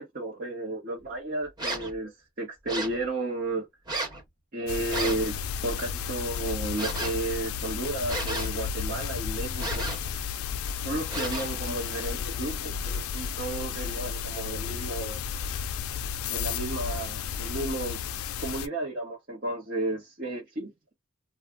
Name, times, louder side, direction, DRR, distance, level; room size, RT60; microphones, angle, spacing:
voice 1, 0.0-3.7 4.5-9.9 10.8-15.2 16.3-18.0 18.4-20.7, right 2 dB, 45° right, 0.9 m, -33 dB
sound 1, 1.6-2.0 2.7-3.0 3.9-4.2 4.9-5.3 6.7-7.2 8.1-8.7 9.6-10.1 11.1-11.6, right 2 dB, 20° right, 1.0 m, -33 dB
sound 2, 4.7-18.7, left 7 dB, 75° left, 0.3 m, -33 dB
2.3 x 2.1 x 3.5 m
head